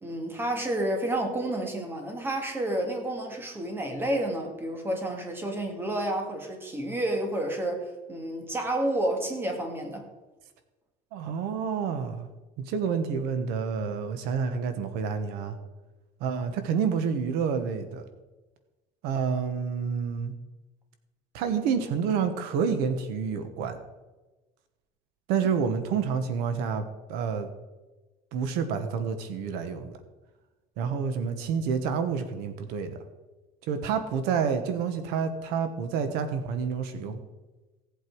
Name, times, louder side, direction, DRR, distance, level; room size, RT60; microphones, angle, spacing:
voice 1, 0.0-10.1, right 1 dB, 15° right, 3 dB, 2.1 m, -30 dB
voice 2, 11.1-12.3 12.6-15.6 16.2-18.0 19.0-20.3 21.3-23.8 25.3-27.5 28.3-30.0 30.8-33.0 33.7-37.2, right 6 dB, 75° right, 8 dB, 1.3 m, -29 dB
16.5 x 8.2 x 4.7 m, 1.2 s
cardioid pair, 150°, 16 cm